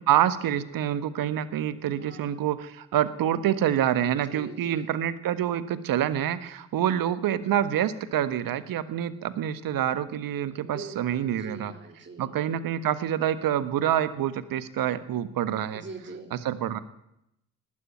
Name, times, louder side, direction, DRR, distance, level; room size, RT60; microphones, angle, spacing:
voice 1, 0.0-11.7 12.2-15.8 16.3-16.8, right 10 dB, 60° right, 13 dB, 1.7 m, -27 dB
voice 2, 2.0-2.4 4.1-4.8 10.5-12.3 15.7-16.3, right 3 dB, 30° right, 4 dB, 4.2 m, -43 dB
20.0 x 13.5 x 9.5 m, 0.83 s
figure-of-eight pair, 45°, 39 cm